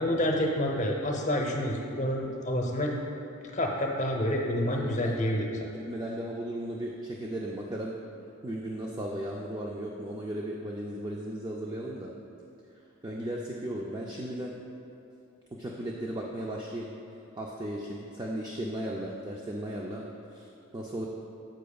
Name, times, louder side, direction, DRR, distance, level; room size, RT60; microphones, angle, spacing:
voice 1, 0.0-3.0 3.5-5.5, left 1 dB, 35° left, 0 dB, 0.8 m, -28 dB
voice 2, 4.7-5.2 5.9-8.0 8.4-12.1 13.0-14.5 15.6-16.9 17.4-20.0 20.3-20.5 20.7-21.1, right 1 dB, 20° right, -2 dB, 0.4 m, -36 dB
10.0 x 7.7 x 2.3 m, 2.7 s
head